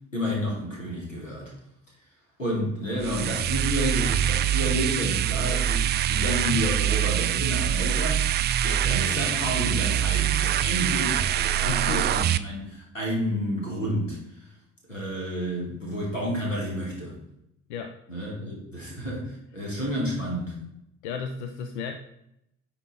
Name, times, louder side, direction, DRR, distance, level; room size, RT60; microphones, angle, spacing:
voice 1, 0.1-1.5 2.4-8.2 8.6-14.4 14.9-17.2 18.1-20.6, equal, 85° left, -3 dB, 1.7 m, -30 dB
sound 1, 3.0-12.4, right 11 dB, 30° right, 0.4 m, -24 dB
voice 2, 11.6-12.1 17.7-17.9 18.4-18.6 21.0-21.9, left 6 dB, 65° left, 7 dB, 0.6 m, -33 dB
9.1 x 4.2 x 4.0 m, 0.80 s
figure-of-eight pair, 50°, 37 cm